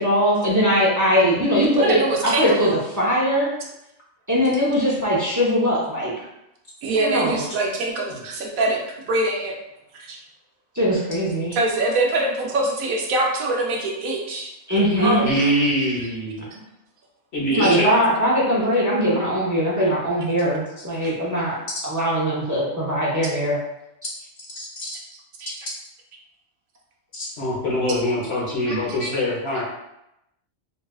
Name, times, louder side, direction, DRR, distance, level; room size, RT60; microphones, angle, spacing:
voice 1, 0.0-3.5 4.3-6.1 7.0-7.4 10.7-11.6 14.7-15.3 17.5-21.6 21.8-23.6 24.0-24.1 28.7-29.1, equal, 20° right, -6 dB, 0.5 m, -21 dB
voice 2, 1.8-2.7 6.8-9.5 10.1-10.2 11.5-14.5 14.8-15.5 17.6-17.7 21.0-21.1 25.4-25.7, right 2 dB, 85° right, 0 dB, 1.1 m, -24 dB
voice 3, 15.2-16.5 17.3-17.9 24.6-24.9 27.1-29.6, equal, 55° left, -5 dB, 1.1 m, -24 dB
3.9 x 2.4 x 2.3 m, 0.85 s
omnidirectional pair, 1.4 m